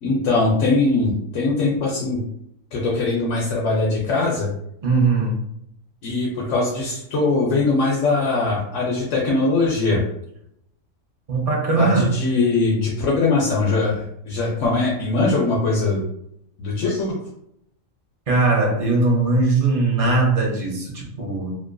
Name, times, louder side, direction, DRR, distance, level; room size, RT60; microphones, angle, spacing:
voice 1, 0.0-2.2 2.7-4.5 6.0-10.0 11.8-16.0 16.6-17.2, left 3 dB, 65° left, -4 dB, 0.9 m, -21 dB
voice 2, 4.8-5.4 11.3-12.1 18.3-21.5, right 3 dB, 45° right, -2 dB, 0.5 m, -20 dB
2.7 x 2.4 x 2.2 m, 0.74 s
omnidirectional pair, 1.4 m